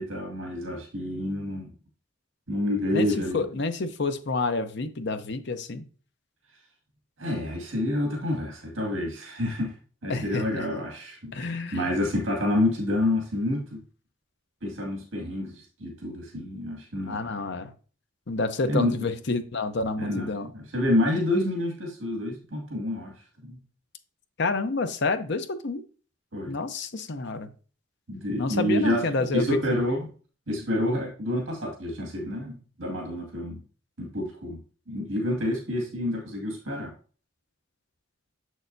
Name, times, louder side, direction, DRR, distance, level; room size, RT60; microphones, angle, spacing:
voice 1, 0.0-1.7 2.5-3.4 7.2-9.7 10.0-13.8 14.6-17.2 18.7-18.9 20.0-20.3 20.5-23.1 23.4-23.6 26.3-26.6 28.1-29.0 29.3-30.1 30.5-33.6 34.0-34.6 34.9-36.9, left 1 dB, 70° right, -1 dB, 2.1 m, -28 dB
voice 2, 2.9-5.9 10.1-10.7 11.3-11.8 17.1-17.7 18.3-20.5 24.4-25.8 26.4-27.5 28.4-29.8, left 3 dB, 55° left, 9 dB, 0.7 m, -29 dB
7.0 x 6.4 x 2.6 m, 0.39 s
head